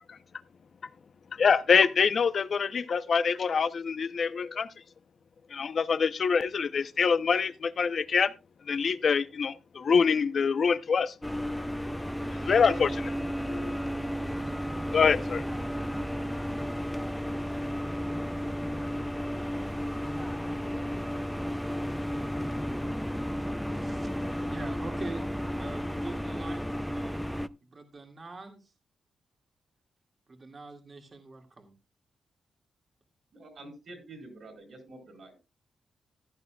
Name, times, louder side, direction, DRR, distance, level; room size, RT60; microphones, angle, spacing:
voice 1, 1.4-4.7 5.5-8.3 8.7-11.1 12.4-13.1 13.5-13.8 14.9-15.4, left 6 dB, 60° left, 0.7 m, -25 dB
sound 1, 11.2-27.5, equal, 5° left, 0.5 m, -33 dB
voice 2, 23.7-24.1 24.4-25.2 25.6-27.3 27.6-28.7 30.3-31.7, right 3 dB, 40° right, 2.1 m, -44 dB
voice 3, 33.3-35.4, right 2 dB, 60° right, 4.8 m, -47 dB
15.0 x 11.0 x 2.3 m
cardioid pair, 80°, 0 cm